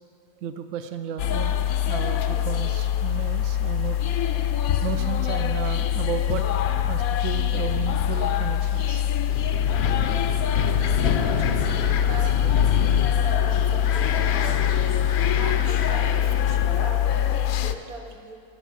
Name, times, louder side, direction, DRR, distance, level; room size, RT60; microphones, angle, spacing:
voice 1, 0.4-1.6 1.9-4.0 4.8-6.4 6.9-9.0 9.7-9.8, right 8 dB, 70° right, 9 dB, 0.9 m, -33 dB
sound 1, 1.2-17.7, left 10 dB, 80° left, 1.0 m, -24 dB
Wind, 9.3-17.4, left 7 dB, 60° left, 0.7 m, -28 dB
voice 2, 10.6-11.7 12.0-14.8 15.3-18.4, right 3 dB, 85° right, 3 dB, 1.5 m, -41 dB
10.5 x 7.3 x 8.3 m, 2.4 s
omnidirectional pair, 1.5 m